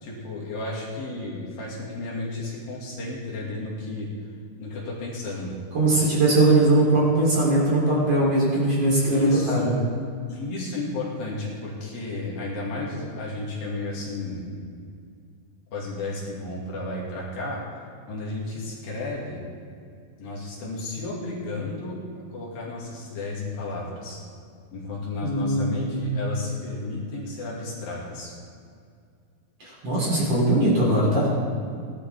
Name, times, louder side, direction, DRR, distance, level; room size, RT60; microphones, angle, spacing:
voice 1, 0.0-4.1 4.6-5.5 9.1-9.7 10.3-14.4 15.7-17.6 18.1-19.4 20.2-22.0 22.3-24.2 24.7-28.3, left 2 dB, 65° left, -4 dB, 3.8 m, -33 dB
voice 2, 5.7-9.7 25.2-26.2 29.6-31.3, right 2 dB, 40° right, -6 dB, 4.3 m, -21 dB
18.0 x 12.0 x 3.6 m, 2.3 s
omnidirectional pair, 4.7 m